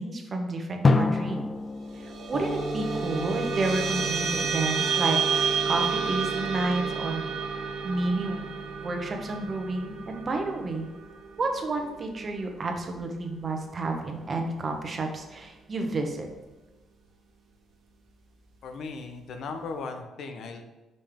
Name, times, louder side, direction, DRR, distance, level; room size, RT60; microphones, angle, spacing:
voice 1, 0.0-1.4 1.9-5.2 5.6-7.2 7.8-8.5 8.8-10.9 11.4-16.3, right 2 dB, 40° right, 3 dB, 1.0 m, -30 dB
Drum, 0.8-3.5, left 3 dB, 35° left, 0.3 m, -27 dB
sound 1, 1.8-12.6, right 5 dB, 75° right, 1.2 m, -31 dB
sound 2, 2.3-10.7, right 1 dB, 15° left, 0.9 m, -39 dB
voice 2, 18.6-20.6, left 4 dB, 70° left, 6 dB, 0.8 m, -37 dB
5.3 x 5.2 x 3.6 m, 1.1 s
cardioid pair, 90°, 0 cm